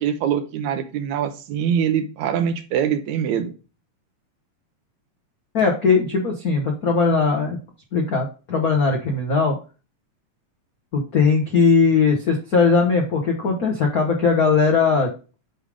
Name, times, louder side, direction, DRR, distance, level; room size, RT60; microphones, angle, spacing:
voice 1, 0.0-3.5, right 8 dB, 80° right, 9 dB, 2.1 m, -23 dB
voice 2, 5.5-7.6 7.9-9.5 10.9-15.1, left 4 dB, 85° left, 2 dB, 0.8 m, -19 dB
8.6 x 3.4 x 5.0 m, 0.34 s
omnidirectional pair, 3.3 m